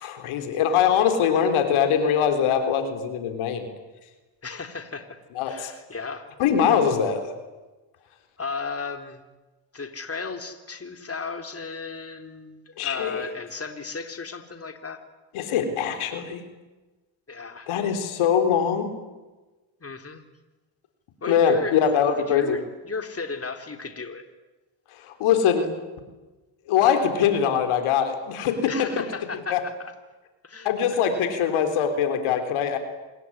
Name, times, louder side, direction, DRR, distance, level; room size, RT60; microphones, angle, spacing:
voice 1, 0.0-3.7 5.4-5.7 6.4-7.3 12.8-13.2 15.3-16.4 17.7-18.9 21.3-22.6 24.9-25.7 26.7-29.0 29.5-29.6 30.6-32.8, left 8 dB, 80° left, 7 dB, 4.0 m, -22 dB
voice 2, 4.4-5.2 5.5-6.3 8.4-9.2 9.7-15.0 17.3-17.7 19.8-20.2 21.2-21.8 22.3-24.2 28.7-29.7 30.4-30.7, left 4 dB, 30° left, 6 dB, 3.7 m, -34 dB
27.0 x 21.5 x 10.0 m, 1.2 s
supercardioid pair, 70°, 49 cm